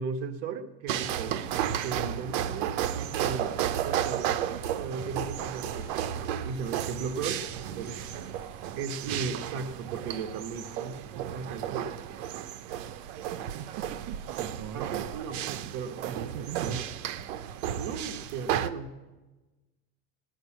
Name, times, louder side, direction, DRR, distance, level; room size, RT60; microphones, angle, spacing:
voice 1, 0.0-1.4 1.8-7.4 7.8-8.0 8.8-11.0 11.3-11.8 14.7-15.5 15.7-16.9 17.8-18.9, right 5 dB, 65° right, 6 dB, 1.3 m, -36 dB
sound 1, 0.9-18.7, right 10 dB, 85° right, 0.8 m, -33 dB
sound 2, 2.9-8.7, left 1 dB, 5° right, 2.0 m, -55 dB
voice 2, 6.9-7.5 11.2-11.4 11.7-11.9 13.4-15.1 15.5-15.7 16.1-16.9, right 10 dB, 45° right, 8 dB, 0.6 m, -41 dB
19.5 x 6.6 x 7.5 m, 1.2 s
cardioid pair, 145°, 36 cm